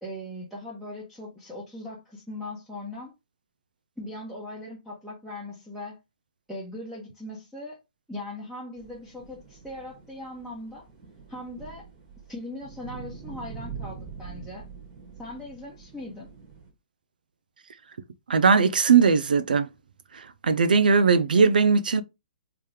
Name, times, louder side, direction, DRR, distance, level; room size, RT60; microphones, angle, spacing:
voice 1, 0.0-3.1 4.0-6.0 6.5-7.8 8.1-10.9 11.3-11.9 12.3-14.6 15.2-16.3, left 1 dB, 5° right, 1.0 m, -39 dB
sound 1, 8.8-16.7, right 6 dB, 30° right, 1.4 m, -44 dB
voice 2, 18.3-19.7 20.4-22.0, right 5 dB, 85° right, 0.5 m, -19 dB
3.3 x 2.9 x 3.3 m
hypercardioid pair, 145°, 5 cm